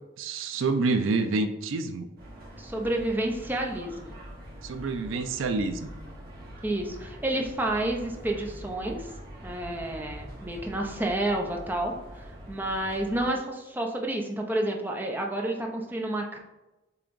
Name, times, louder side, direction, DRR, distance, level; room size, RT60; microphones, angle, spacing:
voice 1, 0.2-2.1 4.6-5.9, right 3 dB, 80° right, 8 dB, 0.4 m, -27 dB
Farmers Market by Wilshire Metro Station, 2.2-13.3, equal, 50° right, 1.1 m, -44 dB
voice 2, 2.6-4.2 6.6-9.1 9.4-16.4, right 1 dB, 10° right, 1 dB, 0.5 m, -30 dB
6.9 x 2.9 x 2.5 m, 1.0 s
head